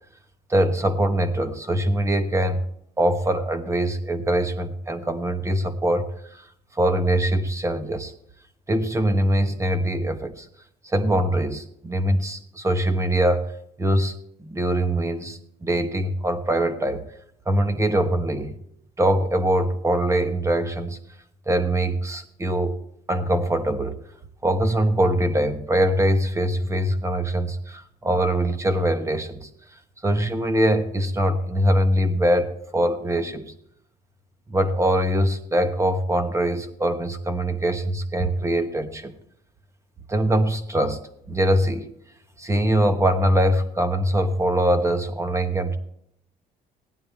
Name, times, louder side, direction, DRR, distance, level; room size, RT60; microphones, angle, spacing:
voice 1, 0.5-2.6 3.0-6.1 6.3-6.4 6.7-8.1 8.7-10.5 10.9-13.5 13.8-14.1 14.4-17.0 17.5-18.5 19.0-21.0 21.5-22.8 23.1-24.0 24.4-29.5 30.0-33.5 34.5-39.1 40.1-41.0 41.3-41.9 42.4-45.8, right 1 dB, 15° right, 9 dB, 1.1 m, -22 dB
16.5 x 9.6 x 3.4 m, 0.70 s
cardioid pair, 110°, 17 cm